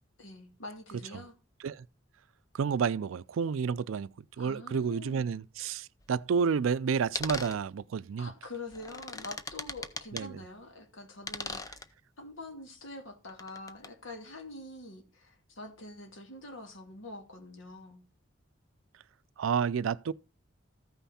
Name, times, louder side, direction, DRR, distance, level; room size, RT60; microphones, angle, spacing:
voice 1, 0.2-1.3 4.3-5.3 8.2-11.6 12.2-18.0, left 2 dB, 80° left, 2.2 m, -45 dB
voice 2, 2.5-8.3 10.1-10.4 19.4-20.1, right 6 dB, 85° right, 0.4 m, -30 dB
sound 1, 6.0-6.1 7.1-7.6 8.7-10.3 11.2-11.8 13.3-13.9, left 3 dB, 20° left, 0.6 m, -39 dB
14.0 x 5.7 x 4.2 m
head